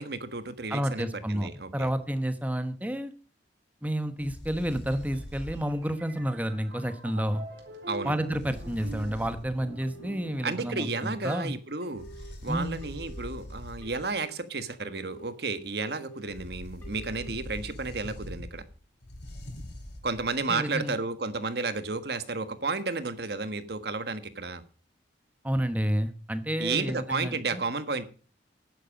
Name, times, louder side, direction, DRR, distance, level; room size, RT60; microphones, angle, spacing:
voice 1, 0.0-1.9 7.9-8.1 10.4-12.0 12.4-18.6 20.0-24.6 26.6-28.1, right 3 dB, 60° right, 11 dB, 1.4 m, -32 dB
voice 2, 0.7-3.1 3.8-7.4 8.0-11.5 12.5-12.8 20.5-21.0 25.4-27.6, equal, 10° right, 10 dB, 1.0 m, -30 dB
sound 1, 4.2-5.9 8.3-9.6 11.9-14.1 16.3-20.4, left 1 dB, 75° left, 3.6 m, -43 dB
sound 2, 4.9-11.6, right 2 dB, 80° right, 3.8 m, -45 dB
Telephone, 9.8-10.3 10.8-11.3 11.8-12.3 12.8-13.3 13.8-14.3 14.8-15.3 15.8-16.3 16.8-17.3, right 4 dB, 10° left, 5.1 m, -48 dB
11.0 x 10.0 x 5.2 m, 0.39 s
head